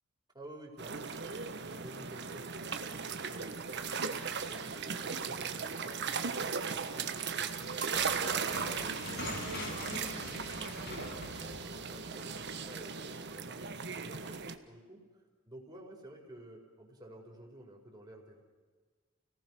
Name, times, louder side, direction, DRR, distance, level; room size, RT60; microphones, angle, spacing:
voice 1, 0.3-2.6 2.9-4.0 4.4-6.3 6.7-8.2 8.6-10.2 10.8-12.9 13.3-18.4, right 1 dB, 20° right, 0 dB, 4.6 m, -52 dB
sound 1, 0.8-14.6, right 5 dB, 60° right, 1.4 m, -37 dB
sound 2, 7.6-12.7, left 2 dB, 60° left, 6.0 m, -43 dB
29.5 x 18.5 x 6.2 m, 1.4 s
head